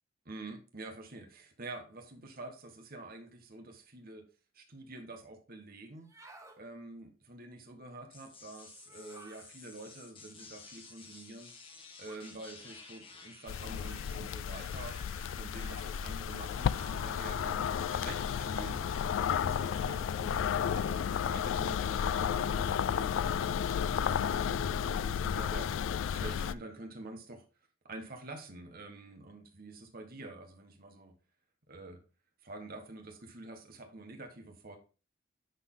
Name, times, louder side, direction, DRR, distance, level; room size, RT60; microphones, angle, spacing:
voice 1, 0.2-4.3 4.5-11.5 12.0-17.6 17.9-18.9 19.3-27.4 27.8-31.1 31.7-32.0 32.4-34.8, right 2 dB, 50° right, 3 dB, 1.4 m, -47 dB
sound 1, 6.0-6.6 8.8-9.5 12.0-12.4 13.7-14.1 15.5-16.0 17.6-17.9, right 1 dB, 15° right, 1.2 m, -54 dB
sound 2, 8.1-26.5, left 2 dB, 30° left, 1.5 m, -52 dB
sound 3, 13.5-26.5, left 8 dB, 70° left, 0.3 m, -32 dB
10.5 x 4.1 x 3.8 m, 0.34 s
head